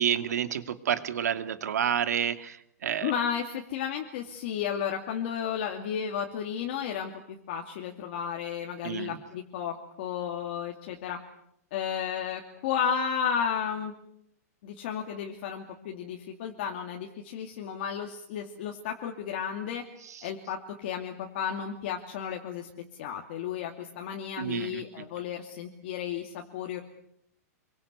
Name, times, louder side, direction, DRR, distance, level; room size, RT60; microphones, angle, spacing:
voice 1, 0.0-3.1 8.8-9.2 24.4-24.8, right 9 dB, 75° right, 10 dB, 2.4 m, -29 dB
voice 2, 3.0-11.2 11.7-13.9 14.6-19.8 20.2-22.7 23.0-26.8, left 8 dB, 40° left, 2 dB, 2.6 m, -33 dB
27.0 x 23.5 x 8.3 m, 0.75 s
hypercardioid pair, 175°, 9 cm